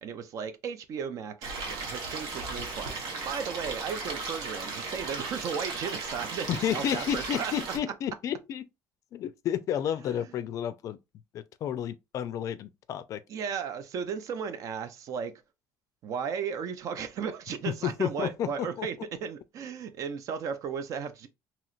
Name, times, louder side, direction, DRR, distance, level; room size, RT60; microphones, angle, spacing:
voice 1, 0.0-7.5 10.2-10.3 13.3-15.3 16.0-21.3, right 7 dB, 55° right, 0.5 m, -35 dB
Stream, 1.4-7.8, right 4 dB, 80° right, 1.1 m, -36 dB
voice 2, 6.5-8.7 9.1-11.0 11.3-13.2 17.7-18.9, left 10 dB, 55° left, 0.4 m, -31 dB
3.0 x 2.9 x 2.4 m
cardioid pair, 125°, 7 cm